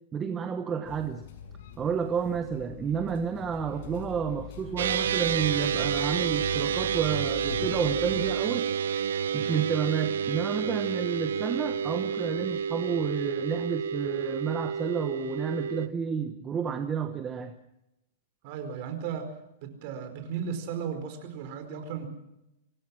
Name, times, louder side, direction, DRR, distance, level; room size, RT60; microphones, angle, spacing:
voice 1, 0.1-1.2 1.8-8.7 9.3-17.5, right 7 dB, 15° right, 7 dB, 1.1 m, -30 dB
sound 1, 0.8-8.4, left 9 dB, 50° left, 5.8 m, -43 dB
sound 2, 4.8-15.9, right 7 dB, 85° right, 0.8 m, -29 dB
voice 2, 18.4-19.3 19.6-22.1, right 7 dB, 35° right, 7 dB, 4.8 m, -35 dB
26.0 x 18.0 x 6.3 m, 0.87 s
supercardioid pair, 175°, 0 cm